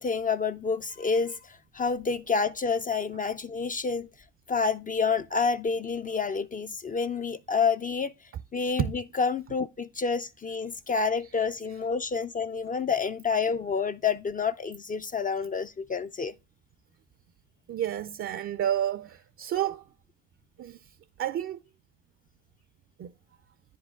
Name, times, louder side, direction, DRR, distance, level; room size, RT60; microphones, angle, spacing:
voice 1, 0.0-1.4 1.7-4.1 4.5-8.1 8.5-16.3, left 5 dB, 30° left, 0.3 m, -28 dB
voice 2, 17.7-19.8 20.6-20.8 21.2-21.6 23.0-23.1, right 11 dB, 45° right, 0.4 m, -30 dB
9.4 x 5.2 x 3.6 m
cardioid pair, 90°, 30 cm